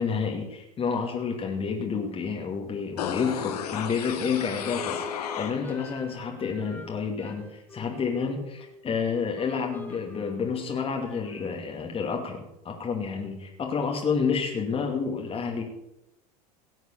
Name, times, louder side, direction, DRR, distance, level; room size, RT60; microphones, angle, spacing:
voice 1, 0.0-15.6, left 5 dB, 30° left, 1 dB, 2.4 m, -29 dB
sound 1, 3.0-6.0 6.3-6.4, left 8 dB, 75° left, 1.8 m, -34 dB
sound 2, 4.6-9.0 9.4-11.7, left 3 dB, 10° left, 2.1 m, -45 dB
17.5 x 7.9 x 6.9 m, 0.87 s
hypercardioid pair, 85°, 20 cm